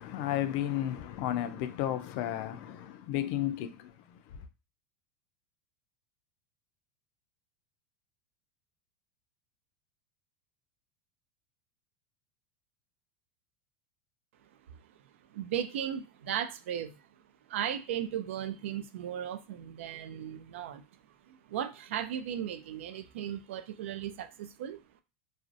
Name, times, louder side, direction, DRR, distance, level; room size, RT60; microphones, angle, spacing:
voice 1, 0.0-3.9, left 12 dB, 60° left, 0.4 m, -33 dB
voice 2, 15.3-17.0 17.5-20.8 21.3-24.8, right 10 dB, 85° right, 0.3 m, -36 dB
2.5 x 2.0 x 2.5 m
supercardioid pair, 130°, 7 cm